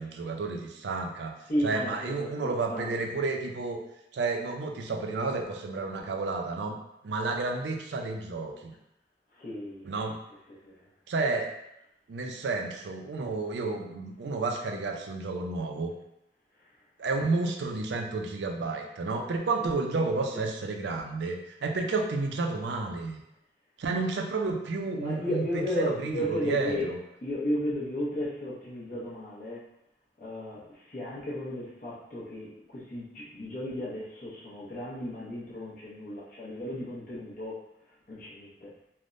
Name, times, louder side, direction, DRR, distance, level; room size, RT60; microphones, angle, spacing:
voice 1, 0.0-1.3 1.6-3.8 4.1-6.8 7.0-8.7 9.8-10.2 11.1-11.5 12.1-15.9 17.0-23.2 23.8-27.0, right 3 dB, 80° right, 3 dB, 0.4 m, -31 dB
voice 2, 1.5-3.0 9.4-9.9 10.6-10.7 19.6-19.7 20.3-20.4 24.9-26.9 27.2-29.6 30.2-37.6 38.1-38.7, equal, 50° left, -9 dB, 0.7 m, -34 dB
3.3 x 2.1 x 2.5 m, 0.83 s
head